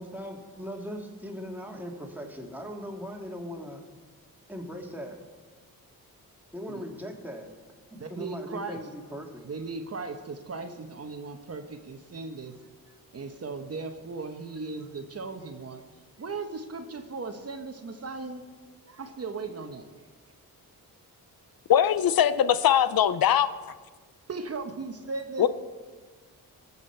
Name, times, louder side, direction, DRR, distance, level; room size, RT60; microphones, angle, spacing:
voice 1, 0.0-3.8 4.5-5.2 6.5-7.5 7.9-9.4, equal, 5° right, 1 dB, 1.9 m, -39 dB
voice 2, 8.0-8.8 9.4-12.5 13.1-15.8 16.2-18.4 18.9-19.9 24.3-25.5, right 4 dB, 40° right, 7 dB, 1.0 m, -37 dB
voice 3, 21.7-23.5 25.4-25.5, left 10 dB, 75° left, 13 dB, 0.6 m, -21 dB
19.5 x 7.3 x 4.5 m, 1.4 s
cardioid pair, 100°, 36 cm